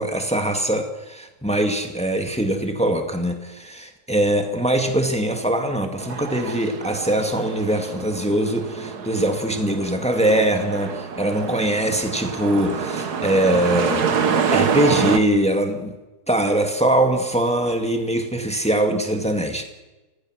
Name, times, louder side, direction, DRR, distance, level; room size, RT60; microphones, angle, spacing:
voice 1, 0.0-14.1 14.5-16.0 16.3-19.6, right 1 dB, 5° left, 5 dB, 2.0 m, -22 dB
sound 1, 6.0-15.2, right 6 dB, 90° right, 2.0 m, -26 dB
29.5 x 16.0 x 6.4 m, 1.1 s
omnidirectional pair, 1.6 m